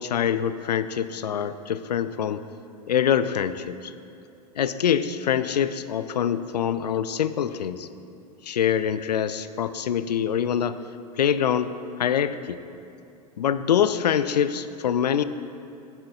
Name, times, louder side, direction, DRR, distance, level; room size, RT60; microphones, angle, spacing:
voice 1, 0.0-2.5 2.9-3.9 4.6-7.9 8.4-10.8 11.1-12.6 13.4-15.2, left 8 dB, 80° left, 13 dB, 0.4 m, -25 dB
10.0 x 6.3 x 4.0 m, 2.7 s
figure-of-eight pair, 95°, 21 cm